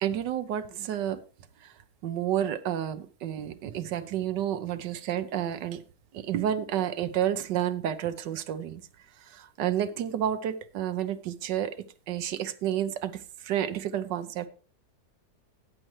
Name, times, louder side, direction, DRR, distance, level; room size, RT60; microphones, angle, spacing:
voice 1, 0.0-1.2 2.0-5.8 6.1-8.8 9.3-11.8 12.1-13.1 13.4-14.5, right 10 dB, 90° right, 10 dB, 1.4 m, -30 dB
14.5 x 8.7 x 3.1 m, 0.38 s
omnidirectional pair, 1.8 m